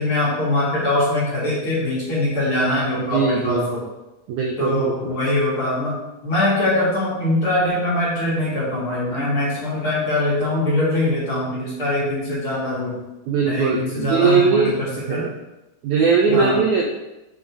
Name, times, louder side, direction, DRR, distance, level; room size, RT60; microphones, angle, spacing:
voice 1, 0.0-3.8 4.6-6.0 6.2-13.0 13.5-15.2 16.3-16.6, left 1 dB, 40° left, -8 dB, 2.4 m, -22 dB
voice 2, 3.0-3.7 4.3-5.1 13.3-14.7 15.1-15.3 15.8-16.8, right 5 dB, 85° right, 1 dB, 1.7 m, -20 dB
7.1 x 3.9 x 4.7 m, 0.99 s
omnidirectional pair, 4.1 m